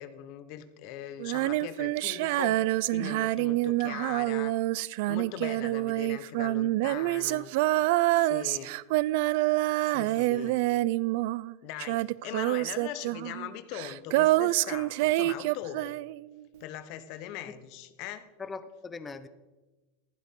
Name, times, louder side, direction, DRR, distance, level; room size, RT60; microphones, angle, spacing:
voice 1, 0.0-4.5 5.1-7.5 8.2-8.8 9.8-10.6 11.6-16.0 16.6-18.3, left 11 dB, 45° left, 12 dB, 1.0 m, -41 dB
Female singing, 1.2-11.5 11.8-16.3, right 18 dB, 55° right, 0.3 m, -27 dB
voice 2, 10.0-10.5 18.4-19.3, left 4 dB, 15° left, 12 dB, 0.7 m, -42 dB
15.0 x 12.0 x 3.7 m, 1.1 s
supercardioid pair, 160°, 0 cm